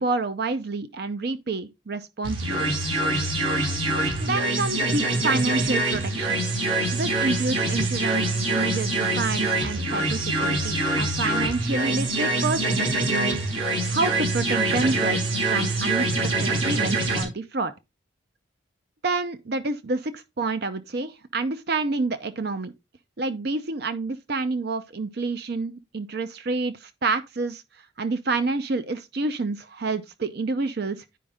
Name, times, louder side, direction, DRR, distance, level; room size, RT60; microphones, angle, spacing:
voice 1, 0.0-2.7 4.2-6.4 6.9-13.5 13.9-16.0 16.4-17.7 19.0-22.7 23.2-27.6 28.0-31.0, right 3 dB, 55° right, 0.6 m, -28 dB
sound 1, 2.2-17.2, right 2 dB, 85° right, 4.2 m, -25 dB
10.0 x 5.2 x 3.5 m
head